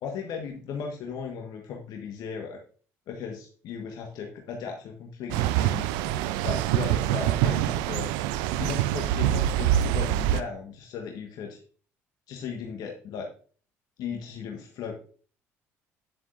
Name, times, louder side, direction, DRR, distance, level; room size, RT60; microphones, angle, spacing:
voice 1, 0.0-2.6 3.1-5.9 6.4-8.1 8.6-11.6 12.3-13.3 14.0-14.9, left 6 dB, 60° left, 2 dB, 1.4 m, -36 dB
sound 1, 5.3-10.4, right 12 dB, 75° right, 0.5 m, -25 dB
10.0 x 7.6 x 2.6 m, 0.41 s
hypercardioid pair, 55°, 7 cm